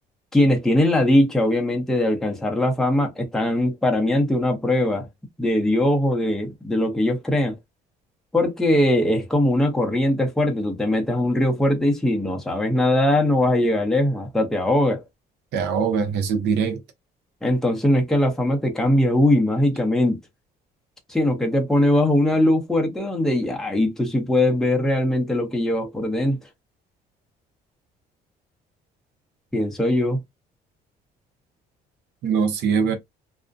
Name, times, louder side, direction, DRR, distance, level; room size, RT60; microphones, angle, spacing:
voice 1, 0.3-5.1 5.4-7.5 8.3-15.0 17.4-20.2 21.1-26.4 29.5-30.2, left 1 dB, 5° left, 0.6 m, -21 dB
voice 2, 15.5-16.8 32.2-32.9, right 6 dB, 80° right, 0.7 m, -22 dB
2.5 x 2.1 x 2.5 m
cardioid pair, 110°, 17 cm